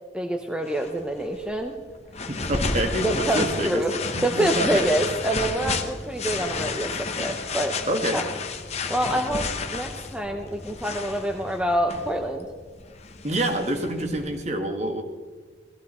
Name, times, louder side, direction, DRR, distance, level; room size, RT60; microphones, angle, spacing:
voice 1, 0.1-1.8 3.0-3.9 4.2-7.8 8.1-8.2 8.9-12.5, right 1 dB, 5° right, 3 dB, 0.7 m, -26 dB
sound 1, 0.7-14.4, left 4 dB, 35° left, 1.0 m, -32 dB
voice 2, 2.3-3.8 4.1-4.9 7.9-8.2 13.2-15.0, right 1 dB, 40° right, 5 dB, 1.5 m, -27 dB
sound 2, 3.4-12.1, equal, 15° left, 2.0 m, -45 dB
18.0 x 14.0 x 4.3 m, 1.4 s
head